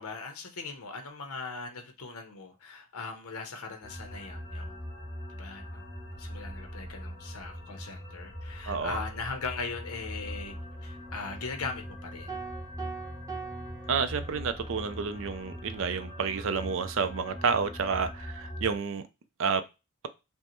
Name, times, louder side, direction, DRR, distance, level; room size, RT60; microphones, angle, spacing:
voice 1, 0.0-4.8 5.3-5.9 6.2-10.6 10.8-12.4, left 4 dB, 85° left, 0.8 m, -39 dB
sound 1, 3.8-18.8, equal, 20° left, 0.7 m, -41 dB
voice 2, 8.7-9.0 13.9-19.0 19.4-19.6, right 5 dB, 60° right, 0.4 m, -30 dB
sound 2, 12.3-14.8, right 6 dB, 15° right, 0.8 m, -42 dB
5.3 x 2.1 x 3.0 m
head